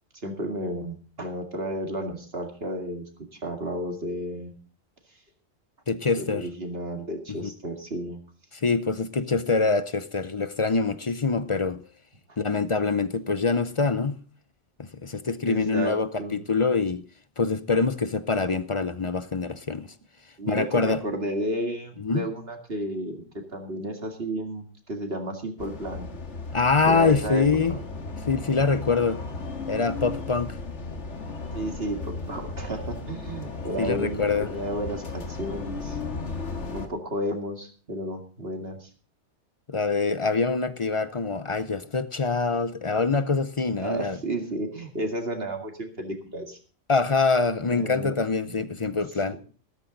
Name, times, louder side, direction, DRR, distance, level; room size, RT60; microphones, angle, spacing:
voice 1, 0.1-4.5 6.2-8.2 12.3-12.4 15.4-16.4 20.4-23.2 23.5-26.1 26.9-27.4 27.7-27.9 31.5-32.0 32.3-36.0 36.7-38.9 43.8-46.6 47.7-48.9, right 1 dB, 60° right, 2.4 m, -32 dB
voice 2, 5.9-6.5 7.4-7.5 8.5-11.8 12.4-14.2 14.8-17.0 17.4-19.9 20.5-21.0 22.0-22.2 26.5-27.8 28.3-29.2 29.7-30.6 33.8-34.5 39.7-44.2 46.9-49.4, left 4 dB, 35° left, 0.5 m, -25 dB
sound 1, 25.6-36.9, left 3 dB, 85° left, 2.0 m, -35 dB
14.0 x 13.5 x 3.9 m
omnidirectional pair, 1.2 m